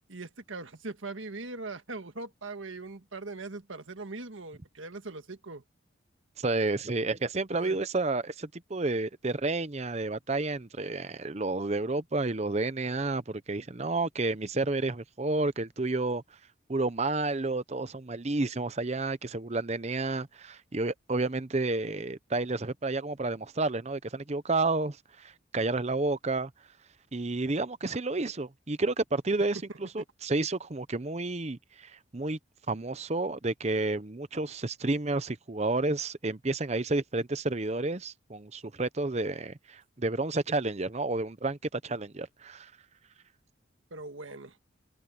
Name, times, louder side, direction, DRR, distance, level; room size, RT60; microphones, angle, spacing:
voice 1, 0.1-5.6 7.5-7.8 43.9-44.6, right 3 dB, 75° right, 1.7 m, -41 dB
voice 2, 6.4-16.2 16.7-26.5 27.1-32.4 32.7-42.7, right 2 dB, 35° right, 0.8 m, -30 dB
head